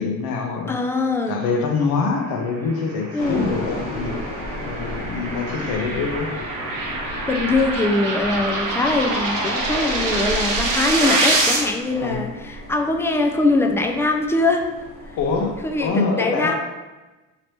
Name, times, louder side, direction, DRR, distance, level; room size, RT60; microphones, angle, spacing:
voice 1, 0.0-0.8 1.3-4.1 4.6-6.3 11.9-12.2 15.2-16.5, left 4 dB, 70° left, 2 dB, 0.7 m, -25 dB
voice 2, 0.7-1.4 3.1-3.5 7.3-14.7 15.6-16.5, left 2 dB, 5° left, 2 dB, 0.3 m, -22 dB
sound 1, 2.7-11.6, right 2 dB, 55° right, 0.9 m, -25 dB
sound 2, 3.2-15.9, equal, 85° left, 1.2 m, -34 dB
2.9 x 2.8 x 3.1 m, 1.1 s
supercardioid pair, 80°, 37 cm